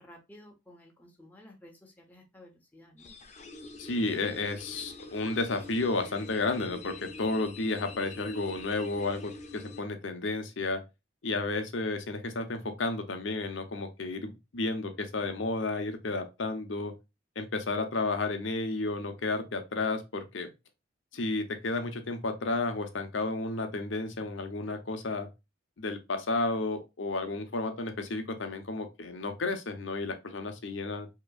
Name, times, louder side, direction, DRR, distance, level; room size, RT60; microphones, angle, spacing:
voice 1, 0.0-3.1, left 1 dB, 10° left, 0.9 m, -54 dB
sound 1, 3.0-9.8, left 2 dB, 35° left, 0.6 m, -46 dB
voice 2, 3.8-10.8 11.2-16.9 17.4-20.5 21.1-25.3 25.8-31.1, left 3 dB, 75° left, 0.7 m, -32 dB
5.1 x 2.9 x 2.3 m
head